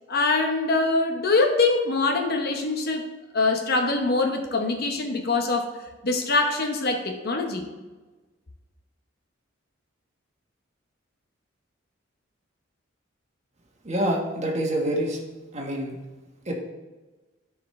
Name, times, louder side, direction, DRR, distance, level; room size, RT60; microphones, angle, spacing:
voice 1, 0.1-3.1 3.3-5.8 6.0-7.7, left 3 dB, 50° left, 3 dB, 1.0 m, -24 dB
voice 2, 13.8-15.2 15.5-16.0 16.4-16.5, right 1 dB, 35° right, 0 dB, 1.5 m, -26 dB
14.0 x 4.9 x 3.2 m, 1.2 s
head